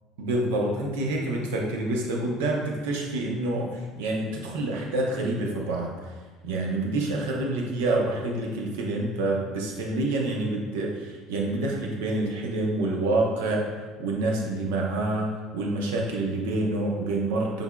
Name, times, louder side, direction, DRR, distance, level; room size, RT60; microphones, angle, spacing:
voice 1, 0.2-5.9 6.4-13.7 14.0-15.3 15.5-17.6, right 2 dB, 80° right, 0 dB, 0.7 m, -27 dB
5.5 x 3.4 x 2.3 m, 1.4 s
hypercardioid pair, 75°, 0 cm